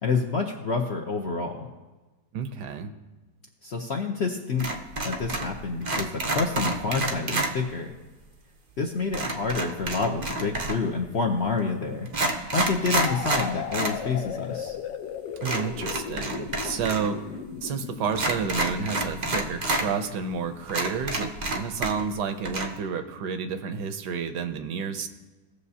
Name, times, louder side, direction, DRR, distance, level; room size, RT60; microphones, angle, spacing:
voice 1, 0.0-1.7 3.6-4.7 5.0-7.9 8.8-12.1 12.5-14.8, left 4 dB, 60° left, 1 dB, 0.7 m, -28 dB
voice 2, 2.3-2.9 15.4-17.2 17.6-25.1, right 6 dB, 75° right, 8 dB, 1.3 m, -30 dB
sound 1, 4.6-5.6 5.8-7.5 9.1-10.9 11.6-11.7 12.1-14.0 14.3-14.4 15.4-17.1 17.3-17.4 18.1-19.9 20.3-20.4 20.7-22.2 22.4-22.7, right 2 dB, 50° right, 0.5 m, -28 dB
sound 2, 13.0-20.7, left 8 dB, 85° left, 1.4 m, -37 dB
17.5 x 6.6 x 2.8 m, 1.2 s
omnidirectional pair, 1.9 m